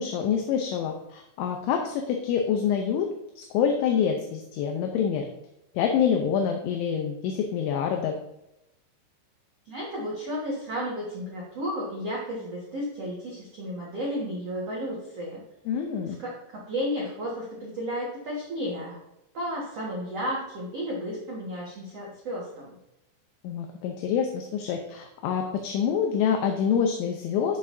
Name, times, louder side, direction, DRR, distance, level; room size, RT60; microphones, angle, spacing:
voice 1, 0.0-3.1 3.4-5.3 5.8-8.1 15.7-16.2 23.4-27.6, left 7 dB, 80° left, 3 dB, 3.0 m, -26 dB
voice 2, 9.7-15.4 16.1-19.0 19.3-22.7, equal, 85° right, -4 dB, 1.3 m, -33 dB
13.5 x 6.6 x 2.7 m, 0.85 s
omnidirectional pair, 5.7 m